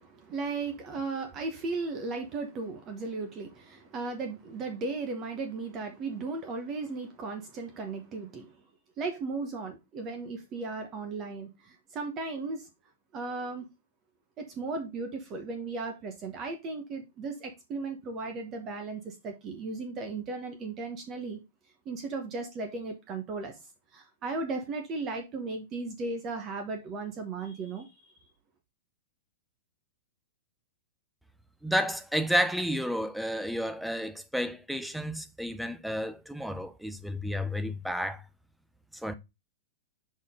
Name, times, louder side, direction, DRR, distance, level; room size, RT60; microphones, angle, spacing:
voice 1, 0.0-8.6 9.0-12.7 13.1-13.7 14.4-21.4 21.8-23.6 23.9-27.9, right 3 dB, 30° right, 1.1 m, -36 dB
voice 2, 31.6-38.2 39.0-39.1, equal, ahead, 0.5 m, -31 dB
6.2 x 4.3 x 3.6 m
hypercardioid pair, 145°, 0 cm